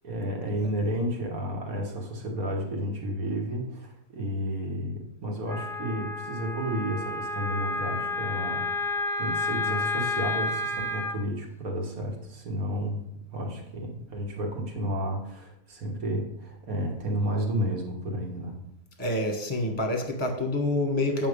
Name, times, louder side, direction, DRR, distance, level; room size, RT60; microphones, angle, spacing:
voice 1, 0.0-13.0 13.3-18.6, equal, 75° right, 1 dB, 2.0 m, -32 dB
Wind instrument woodwind instrument, 5.5-11.2, left 2 dB, 5° left, 0.4 m, -30 dB
voice 2, 19.0-21.3, left 1 dB, 20° left, 4 dB, 1.1 m, -27 dB
8.4 x 5.9 x 5.1 m, 0.79 s
omnidirectional pair, 1.5 m